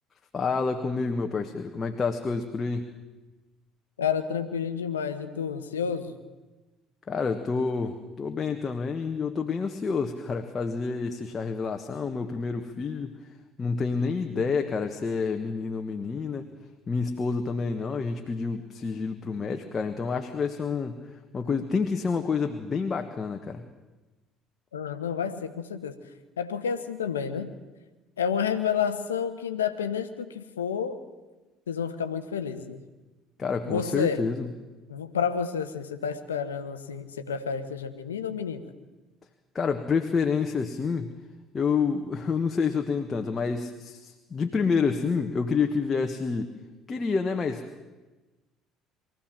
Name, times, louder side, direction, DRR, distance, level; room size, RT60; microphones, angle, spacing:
voice 1, 0.3-2.9 7.1-13.2 13.6-16.5 16.9-21.0 21.3-23.6 33.4-34.5 39.5-41.1 41.5-46.5 46.9-47.8, left 5 dB, 35° left, 5 dB, 1.5 m, -28 dB
voice 2, 4.0-6.2 14.3-14.5 24.7-25.9 26.4-27.5 28.2-31.0 31.7-32.8 33.7-34.2 34.9-38.7, left 7 dB, 90° left, 10 dB, 1.2 m, -30 dB
23.5 x 15.0 x 7.6 m, 1.2 s
hypercardioid pair, 60°, 0 cm